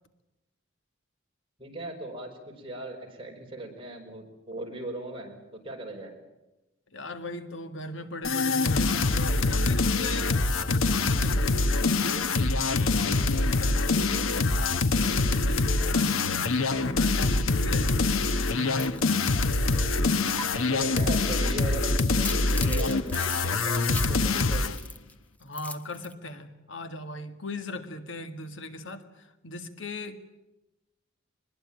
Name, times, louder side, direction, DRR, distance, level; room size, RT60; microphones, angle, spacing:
voice 1, 1.6-6.2 19.7-20.0 20.6-24.7, right 2 dB, 25° right, 0 dB, 5.3 m, -39 dB
voice 2, 6.9-18.2 18.5-19.1 25.4-30.2, left 2 dB, 70° left, 8 dB, 1.9 m, -39 dB
sound 1, 8.2-24.8, left 3 dB, 90° left, 1.1 m, -25 dB
sound 2, 18.7-20.0 20.4-20.5 22.0-25.1 25.4-26.1, left 1 dB, 10° left, 0.9 m, -40 dB
24.0 x 21.0 x 8.8 m, 0.99 s
head